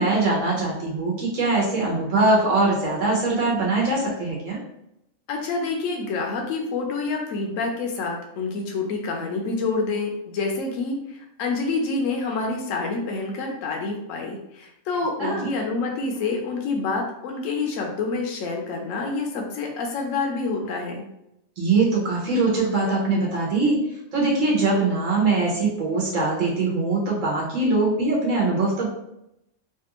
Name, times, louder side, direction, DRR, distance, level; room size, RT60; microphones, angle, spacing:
voice 1, 0.0-4.6 15.2-15.5 21.6-23.8 24.1-28.9, right 3 dB, 75° right, -4 dB, 1.3 m, -22 dB
voice 2, 5.3-21.1, left 3 dB, 75° left, 1 dB, 1.0 m, -27 dB
3.3 x 2.4 x 2.9 m, 0.83 s
omnidirectional pair, 1.4 m